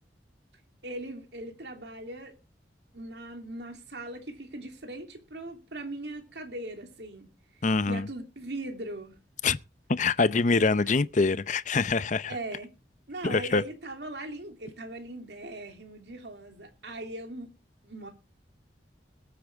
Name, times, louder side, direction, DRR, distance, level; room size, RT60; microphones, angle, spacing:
voice 1, 0.8-2.4 2.9-7.3 7.5-9.2 10.8-10.9 12.3-12.7 13.1-17.5 17.8-18.1, right 1 dB, 65° right, 2.9 m, -40 dB
voice 2, 7.6-8.0 9.4-9.6 9.9-12.3 13.2-13.6, left 4 dB, 45° left, 0.6 m, -24 dB
21.0 x 8.7 x 3.5 m
head